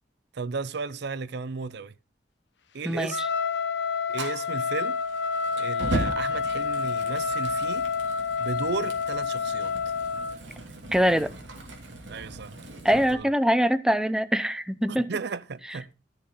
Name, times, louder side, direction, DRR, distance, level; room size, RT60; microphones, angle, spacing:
voice 1, 0.3-1.9 2.7-3.2 4.1-5.0 5.6-7.9 8.4-9.9 12.1-12.5 13.1-13.3 14.9-15.9, right 4 dB, 65° right, 0.6 m, -34 dB
Trumpet, 3.0-10.4, left 5 dB, 70° left, 0.9 m, -28 dB
Fire, 4.1-13.1, right 1 dB, 85° right, 2.7 m, -37 dB
voice 2, 10.9-11.3 12.8-15.1, equal, 5° right, 0.6 m, -23 dB
14.0 x 6.6 x 4.0 m
head